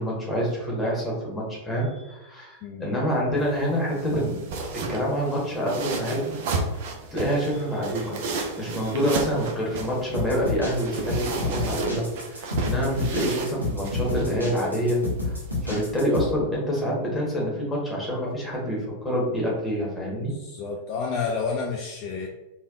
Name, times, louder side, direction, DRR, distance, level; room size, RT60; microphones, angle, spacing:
voice 1, 0.0-4.5 4.7-6.4 7.1-12.0 12.3-15.4 15.6-20.4, equal, 10° left, -4 dB, 1.1 m, -27 dB
sound 1, 3.4-16.0, right 3 dB, 50° right, 0.5 m, -34 dB
sound 2, 10.1-16.3, left 2 dB, 90° right, 0.7 m, -30 dB
voice 2, 20.2-22.3, left 5 dB, 40° left, 0 dB, 0.3 m, -30 dB
3.2 x 2.2 x 2.4 m, 1.0 s
figure-of-eight pair, 90°, 0 cm